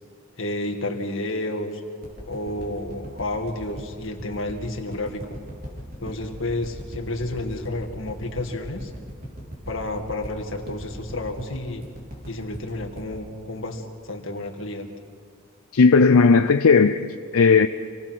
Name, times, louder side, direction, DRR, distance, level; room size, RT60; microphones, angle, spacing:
voice 1, 0.4-1.8 2.3-5.4 6.0-8.9 9.7-11.8 12.3-14.9, left 1 dB, 60° left, 2 dB, 2.1 m, -31 dB
sound 1, 2.0-14.4 14.8-14.9, equal, 40° right, 4.5 m, -39 dB
voice 2, 15.7-17.7, left 4 dB, 80° left, 9 dB, 0.6 m, -16 dB
27.5 x 17.5 x 6.1 m, 2.1 s
head